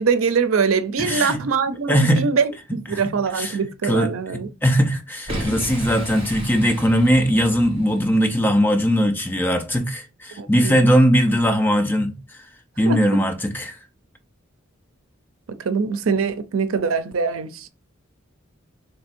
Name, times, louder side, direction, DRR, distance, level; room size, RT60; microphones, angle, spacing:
voice 1, 0.0-4.5 10.4-10.9 12.9-13.0 15.6-17.7, right 5 dB, 85° right, 0.5 m, -23 dB
voice 2, 1.0-1.4 1.9-2.2 2.9-3.0 3.3-3.5 3.8-4.1 4.6-12.2 12.8-13.8, equal, 10° left, 0.6 m, -19 dB
Boom, 5.3-8.2, right 1 dB, 30° right, 1.8 m, -33 dB
3.5 x 3.2 x 4.3 m
head